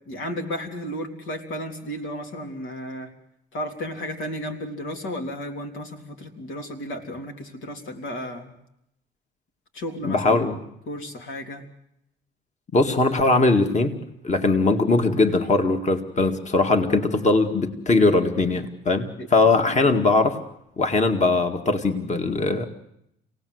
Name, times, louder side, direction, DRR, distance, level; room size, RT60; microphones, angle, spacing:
voice 1, 0.0-3.1 3.5-8.5 9.7-10.5 10.9-11.6 19.2-19.3 19.6-20.0, equal, 85° left, 5 dB, 3.4 m, -33 dB
voice 2, 10.0-10.6 12.7-14.0 14.2-20.4 20.8-22.6, left 3 dB, 35° left, 6 dB, 2.1 m, -20 dB
27.5 x 18.5 x 8.0 m, 0.80 s
cardioid pair, 90°, 20 cm